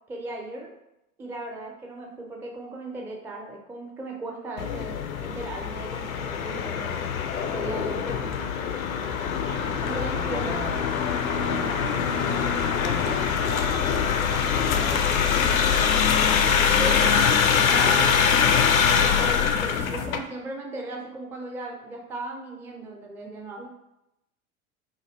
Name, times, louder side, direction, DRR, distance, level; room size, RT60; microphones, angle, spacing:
voice 1, 0.1-0.7 1.2-7.1 7.4-8.5 9.8-10.6 16.8-17.1 17.5-18.1 18.8-23.7, right 2 dB, 5° right, 0 dB, 0.3 m, -37 dB
sound 1, 4.6-20.2, left 7 dB, 75° left, 0.5 m, -23 dB
voice 2, 9.5-10.8 11.4-17.0 17.5-18.1, right 3 dB, 80° right, 0 dB, 0.9 m, -39 dB
2.9 x 2.6 x 4.0 m, 0.88 s
figure-of-eight pair, 75°, 42 cm